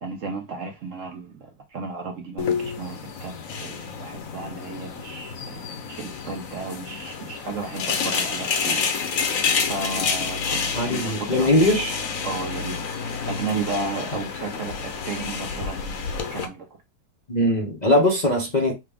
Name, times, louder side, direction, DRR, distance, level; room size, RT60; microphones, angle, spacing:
voice 1, 0.0-8.9 9.7-11.7 12.2-12.8 13.3-16.0 16.3-16.7, right 4 dB, 60° right, 0.9 m, -33 dB
sound 1, 2.4-16.5, left 5 dB, 60° left, 1.1 m, -29 dB
voice 2, 10.7-12.0 17.3-18.7, left 1 dB, 35° left, 0.7 m, -20 dB
5.9 x 2.3 x 3.4 m
omnidirectional pair, 1.9 m